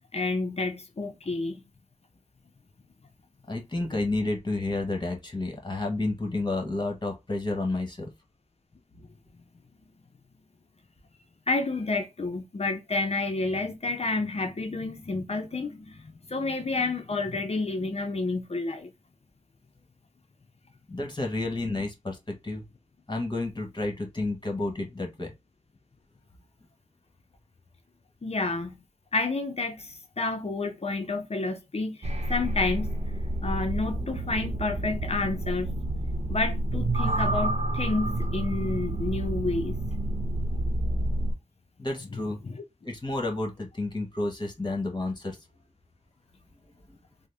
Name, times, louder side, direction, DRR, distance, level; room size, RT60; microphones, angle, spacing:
voice 1, 0.1-1.6 11.5-18.9 28.2-28.8 29.1-32.9 33.4-35.8 36.3-39.8 42.1-42.2 42.4-42.6, left 3 dB, 50° left, 0.6 m, -30 dB
voice 2, 3.5-8.1 20.9-22.2 22.4-22.6 23.1-25.3 41.8-42.4 42.8-45.4 46.9-47.0, left 2 dB, 35° left, 1.4 m, -30 dB
sound 1, 32.0-41.3, right 1 dB, 55° right, 0.8 m, -29 dB
3.8 x 2.1 x 3.3 m
wide cardioid pair, 55°, 13 cm